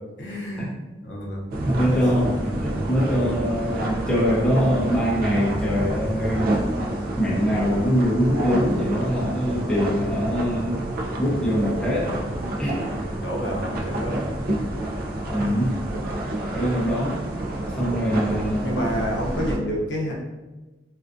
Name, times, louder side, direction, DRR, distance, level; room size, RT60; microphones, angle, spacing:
voice 1, 0.2-0.8 1.0-1.4 1.9-2.0 13.2-14.3 18.0-18.1 18.6-20.1, equal, 80° left, -2 dB, 0.6 m, -29 dB
sound 1, 1.5-19.6, right 1 dB, 55° right, 0.4 m, -28 dB
voice 2, 1.6-6.6 7.2-10.7 11.2-12.2 12.6-12.9 15.3-15.8 16.5-17.2 17.8-18.7, equal, 5° left, -7 dB, 0.6 m, -23 dB
2.4 x 2.4 x 2.4 m, 1.1 s
head